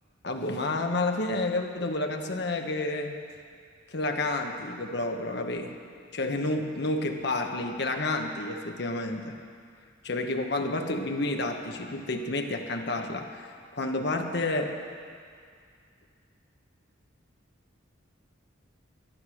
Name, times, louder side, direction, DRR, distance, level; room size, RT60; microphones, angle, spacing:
voice 1, 0.2-3.2 3.9-5.8 6.1-9.4 10.0-13.5 13.7-14.7, left 2 dB, 55° left, 4 dB, 1.1 m, -30 dB
13.0 x 11.0 x 6.4 m, 2.2 s
head